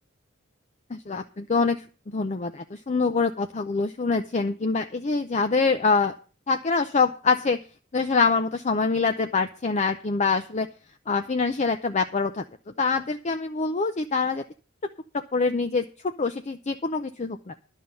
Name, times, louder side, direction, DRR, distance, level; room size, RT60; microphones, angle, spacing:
voice 1, 0.9-6.1 6.5-7.6 7.9-10.7 11.1-12.4 12.8-14.4 15.3-17.5, left 4 dB, 35° left, 8 dB, 0.5 m, -25 dB
11.5 x 5.5 x 8.9 m, 0.36 s
head